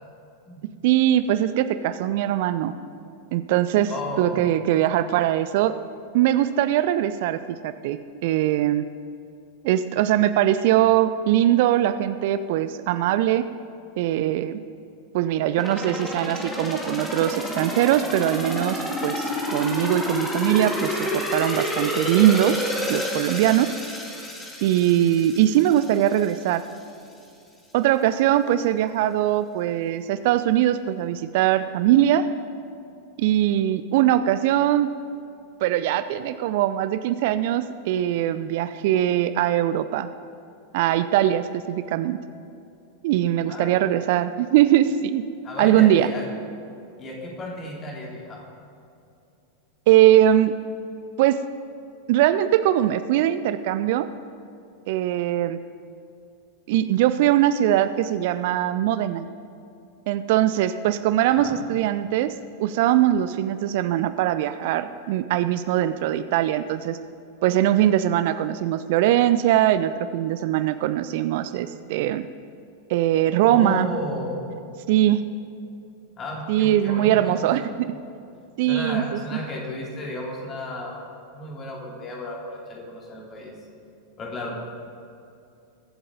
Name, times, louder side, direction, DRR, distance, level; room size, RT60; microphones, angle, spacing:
voice 1, 0.8-2.7 3.3-3.9 4.2-5.8 6.1-8.9 9.6-13.5 14.0-14.6 15.1-23.8 24.6-26.6 27.7-32.3 33.2-34.9 35.6-40.1 40.7-42.2 43.0-45.2 45.6-46.1 49.9-50.5 51.2-51.4 52.1-54.1 54.9-55.6 56.7-59.3 60.1-62.3 62.6-67.0 67.4-72.3 72.9-73.9 74.9-75.2 76.5-77.9 78.6-79.2, right 12 dB, 50° right, 12 dB, 0.4 m, -21 dB
voice 2, 3.9-4.4 43.5-43.8 45.4-46.3 47.0-48.5 61.2-61.6 73.4-74.4 76.2-77.3 78.7-81.0 81.3-83.5 84.2-84.7, left 1 dB, 25° left, -2 dB, 3.0 m, -33 dB
sound 1, 15.6-26.3 26.7-26.8, left 1 dB, 10° left, 2.2 m, -29 dB
22.0 x 7.8 x 3.9 m, 2.6 s
figure-of-eight pair, 90°, 0 cm